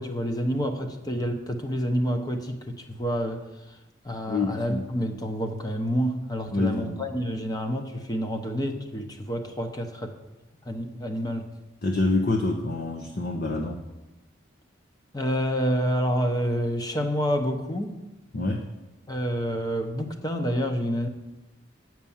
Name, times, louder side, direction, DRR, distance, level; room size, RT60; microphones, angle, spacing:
voice 1, 0.0-3.8 4.0-10.2 10.6-11.5 15.1-18.0 19.1-21.1, equal, 20° left, 5 dB, 0.9 m, -28 dB
voice 2, 4.3-4.9 6.5-7.0 11.8-13.8 18.3-18.6, left 2 dB, 50° left, 1 dB, 0.8 m, -26 dB
8.8 x 6.1 x 7.1 m, 1.0 s
head